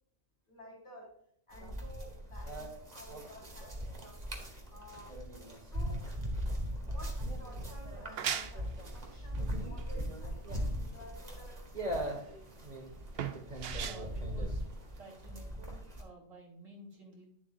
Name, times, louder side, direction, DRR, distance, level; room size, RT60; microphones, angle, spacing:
voice 1, 0.5-1.2 1.5-4.2 4.7-5.2 5.6-6.2 6.8-12.5, equal, 25° left, -2 dB, 3.7 m, -53 dB
sound 1, 1.5-16.0, equal, 35° right, 1.7 m, -39 dB
sound 2, 7.9-15.3, right 8 dB, 60° right, 0.8 m, -41 dB
voice 2, 13.8-14.6 15.0-17.2, right 2 dB, 90° right, -3 dB, 3.3 m, -53 dB
11.0 x 7.4 x 2.5 m, 0.66 s
omnidirectional pair, 1.3 m